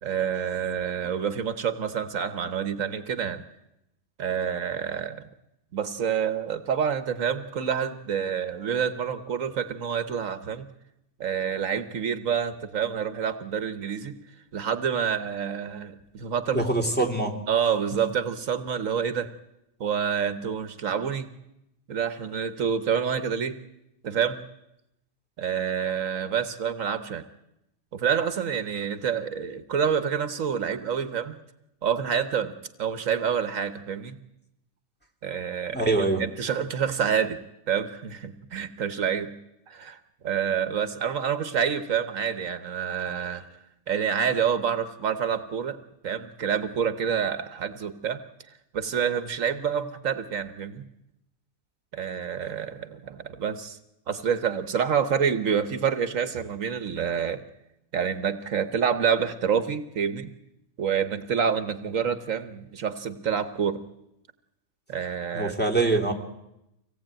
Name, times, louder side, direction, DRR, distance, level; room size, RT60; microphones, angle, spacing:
voice 1, 0.0-3.4 4.2-5.2 5.7-10.7 11.2-14.2 14.5-16.6 17.5-19.3 19.8-21.3 21.9-23.6 24.0-24.4 25.4-27.2 27.9-31.4 31.8-32.5 32.8-34.2 35.2-37.4 37.7-39.3 39.7-40.0 40.2-43.5 43.9-45.8 46.0-48.2 48.7-50.8 51.9-53.8 54.1-57.4 57.9-60.3 60.8-63.8 64.9-65.5, right 7 dB, 70° right, 11 dB, 1.4 m, -27 dB
voice 2, 16.5-17.4 35.7-36.2 65.3-66.1, right 2 dB, 5° left, -1 dB, 2.8 m, -24 dB
25.0 x 17.5 x 8.9 m, 0.87 s
omnidirectional pair, 1.4 m